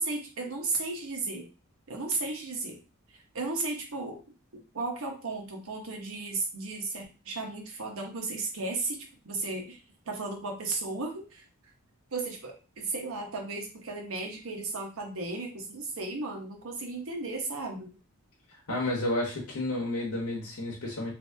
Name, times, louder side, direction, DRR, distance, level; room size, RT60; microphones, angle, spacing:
voice 1, 0.0-1.5 1.9-2.8 3.1-4.2 4.7-9.8 10.1-11.4 12.1-18.0, right 3 dB, 65° right, 1 dB, 1.0 m, -34 dB
voice 2, 18.5-21.1, left 1 dB, 75° left, -3 dB, 0.9 m, -31 dB
2.9 x 2.7 x 3.3 m, 0.33 s
head